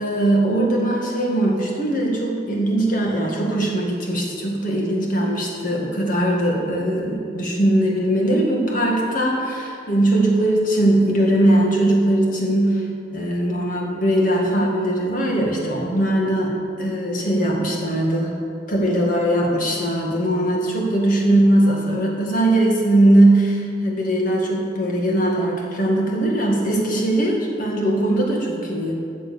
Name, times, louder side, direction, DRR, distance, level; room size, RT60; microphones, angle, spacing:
voice 1, 0.0-18.3 18.7-28.9, right 1 dB, 45° left, -1 dB, 2.1 m, -20 dB
13.0 x 7.5 x 7.0 m, 2.5 s
head